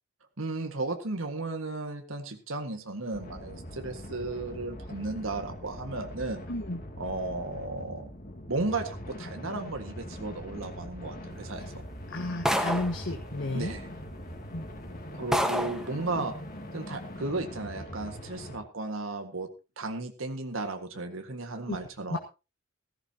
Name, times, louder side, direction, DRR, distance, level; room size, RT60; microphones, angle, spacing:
voice 1, 0.4-6.4 7.0-8.1 8.5-11.8 13.5-13.9 15.1-16.3 16.7-19.5 19.8-22.2, right 2 dB, 90° right, 5 dB, 1.8 m, -34 dB
sound 1, 3.1-18.6, left 1 dB, 45° left, 2.5 m, -42 dB
voice 2, 6.5-6.8 12.1-13.7 14.5-14.7 21.7-21.8 22.1-22.2, left 1 dB, 65° left, 4 dB, 1.5 m, -32 dB
sound 2, 12.5-13.0 14.1-14.2 14.7-14.8 15.3-15.9, equal, 5° right, 1.3 m, -27 dB
15.5 x 15.0 x 2.9 m, 0.29 s
head